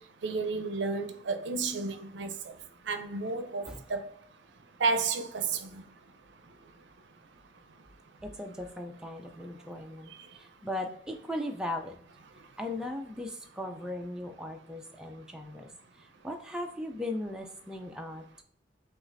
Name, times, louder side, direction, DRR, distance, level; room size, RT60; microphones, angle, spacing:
voice 1, 0.2-2.3 2.9-4.0 4.8-5.7, right 4 dB, 70° right, 0.5 m, -31 dB
voice 2, 8.2-12.0 12.6-15.7 15.9-18.4, left 1 dB, 5° right, 0.3 m, -38 dB
6.1 x 2.4 x 2.6 m
head